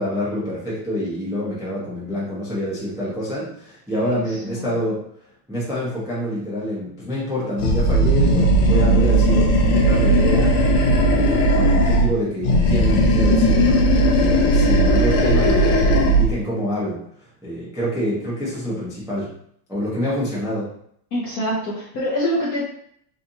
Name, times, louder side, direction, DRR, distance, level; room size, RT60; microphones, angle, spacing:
voice 1, 0.0-5.0 5.5-10.6 10.8-19.3 19.7-20.7, equal, 5° right, -7 dB, 0.4 m, -27 dB
voice 2, 3.9-4.7 21.1-22.6, equal, 60° left, -6 dB, 0.9 m, -26 dB
Animal, 7.6-12.1 12.4-16.3, right 1 dB, 90° left, 1.7 m, -16 dB
4.5 x 2.6 x 2.8 m, 0.66 s
omnidirectional pair, 2.4 m